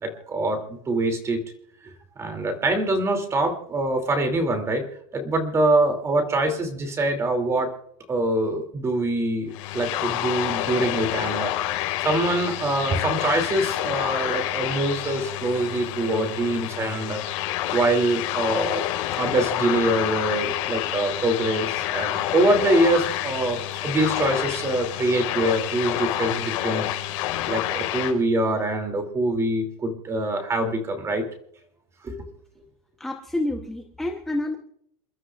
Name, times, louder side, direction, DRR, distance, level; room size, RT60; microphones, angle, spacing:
voice 1, 0.0-1.4 1.8-4.9 5.1-7.7 8.1-17.2 17.7-18.9 19.2-27.1 27.5-31.2 32.0-32.3, right 1 dB, 15° right, 5 dB, 2.7 m, -24 dB
sound 1, 9.5-28.1, left 14 dB, 60° left, 4.5 m, -28 dB
voice 2, 33.0-34.6, left 1 dB, ahead, 2 dB, 0.9 m, -28 dB
28.5 x 12.5 x 2.4 m, 0.68 s
supercardioid pair, 165°, 18 cm